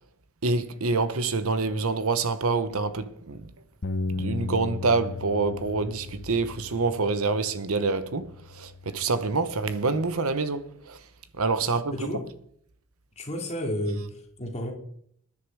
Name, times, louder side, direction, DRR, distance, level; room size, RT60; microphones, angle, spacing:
voice 1, 0.4-3.5 4.1-11.0 11.3-12.1, right 3 dB, 70° right, 1.0 m, -26 dB
Bass guitar, 3.8-10.1, left 3 dB, 55° left, 0.9 m, -37 dB
voice 2, 13.2-14.7, equal, 30° left, 2.7 m, -31 dB
19.5 x 10.0 x 4.8 m
head